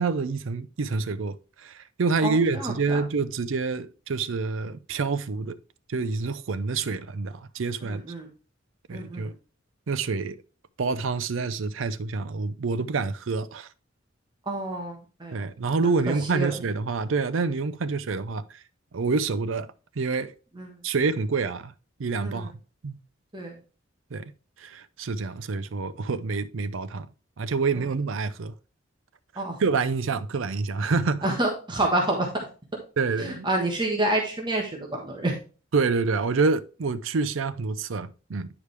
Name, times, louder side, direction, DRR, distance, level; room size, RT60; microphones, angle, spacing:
voice 1, 0.0-5.6 5.9-8.0 8.9-9.3 9.9-10.4 10.8-13.7 15.3-18.4 18.9-19.7 20.0-20.3 20.8-21.7 22.0-22.5 22.8-23.0 24.1-24.3 24.6-27.1 27.4-28.5 29.3-31.3 33.0-33.5 35.7-38.5, right 4 dB, 75° right, 0.5 m, -27 dB
voice 2, 2.2-3.0 7.8-8.3 8.9-9.3 14.5-15.4 16.3-16.5 20.6-20.7 22.2-22.5 23.3-23.5 29.4-29.6 31.2-32.3 33.2-35.3, right 1 dB, 25° right, 1.3 m, -28 dB
9.8 x 4.9 x 3.3 m
head